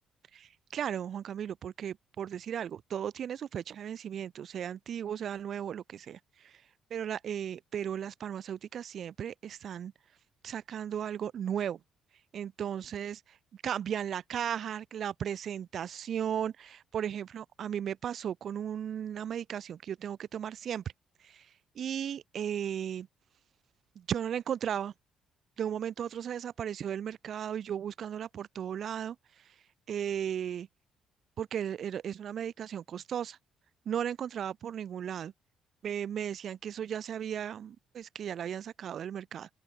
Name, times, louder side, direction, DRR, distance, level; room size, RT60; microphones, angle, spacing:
voice 1, 0.3-6.5 6.9-9.9 10.4-11.8 12.3-13.4 13.6-20.8 21.2-21.5 21.7-23.1 24.0-24.9 25.6-29.2 29.9-30.7 31.4-33.4 33.9-35.3 35.8-39.5, right 9 dB, 50° right, 1.1 m, -36 dB
open air
cardioid pair, 130°, 0 cm